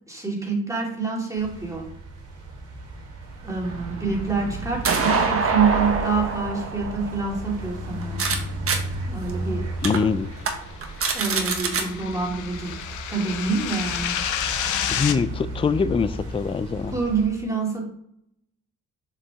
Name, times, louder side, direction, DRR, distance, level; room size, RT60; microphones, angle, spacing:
voice 1, 0.1-1.8 3.4-8.2 9.1-9.7 11.1-12.8 13.1-14.1 16.9-17.8, right 4 dB, 10° right, -3 dB, 2.8 m, -26 dB
sound 1, 1.4-17.3, right 2 dB, 85° right, 2.6 m, -35 dB
sound 2, 3.6-8.4 8.7-8.8 9.3-9.4 9.8-10.0 10.4-10.5 10.8-11.8, right 5 dB, 50° right, 1.3 m, -26 dB
voice 2, 9.8-10.3 15.0-17.0, left 5 dB, 20° left, 14 dB, 0.4 m, -24 dB
sound 3, 10.7-15.2, left 9 dB, 75° left, 0.8 m, -30 dB
6.9 x 5.1 x 3.6 m, 0.71 s
cardioid pair, 90°, 30 cm